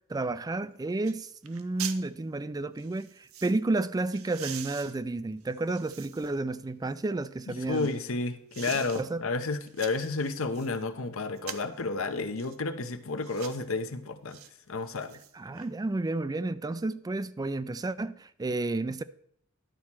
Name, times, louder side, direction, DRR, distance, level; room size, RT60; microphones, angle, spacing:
voice 1, 0.1-7.9 9.0-9.2 15.4-19.0, right 2 dB, 20° right, 0.3 m, -31 dB
sound 1, 0.5-0.6 1.0-1.2 1.4-2.0 2.8-3.6 4.1-6.4 6.9-8.0 8.5-9.0 9.4-10.7 11.4-11.8 12.4-12.6 13.2-13.6 14.3-14.5 14.9-15.7 16.0-16.1, right 10 dB, 80° right, 0.7 m, -44 dB
voice 2, 7.5-14.4 14.7-15.2, left 3 dB, 75° left, 0.9 m, -31 dB
11.5 x 4.3 x 6.0 m
head